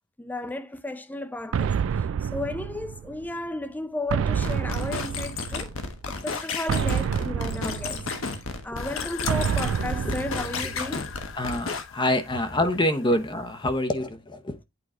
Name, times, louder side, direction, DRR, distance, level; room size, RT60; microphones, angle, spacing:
voice 1, 0.2-5.8 6.1-8.1 8.3-11.1, left 2 dB, 10° left, 0.5 m, -34 dB
sound 1, 1.5-3.3 4.1-5.8 6.7-8.5 9.3-11.0, right 7 dB, 70° right, 0.3 m, -28 dB
sound 2, 4.3-11.8, left 4 dB, 85° left, 1.3 m, -33 dB
sound 3, 8.8-13.9, left 8 dB, 70° left, 0.5 m, -41 dB
voice 2, 11.3-14.6, left 1 dB, 25° left, 0.9 m, -26 dB
8.7 x 4.6 x 3.7 m
head